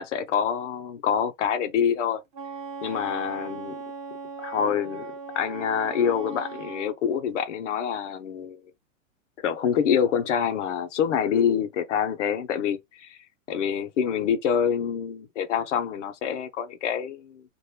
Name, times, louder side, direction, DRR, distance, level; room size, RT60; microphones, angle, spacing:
voice 1, 0.0-2.2 2.8-3.7 4.4-8.6 9.4-13.2 13.5-17.5, left 8 dB, 60° left, 0.9 m, -26 dB
Wind instrument woodwind instrument, 2.3-6.9, right 5 dB, 40° right, 1.0 m, -38 dB
3.3 x 2.6 x 2.8 m
supercardioid pair, 165°, 40 cm